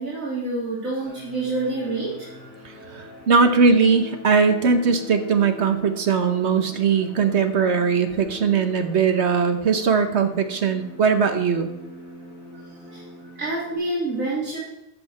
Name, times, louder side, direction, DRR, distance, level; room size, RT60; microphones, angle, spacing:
voice 1, 0.0-2.4 12.5-12.6 12.9-13.0 13.4-14.6, right 2 dB, 80° right, -7 dB, 3.0 m, -27 dB
sound 1, 1.0-13.7, left 2 dB, 35° left, 4.1 m, -42 dB
voice 2, 2.9-11.7, right 5 dB, 55° right, 7 dB, 1.2 m, -20 dB
13.5 x 7.8 x 4.2 m, 0.90 s
omnidirectional pair, 1.4 m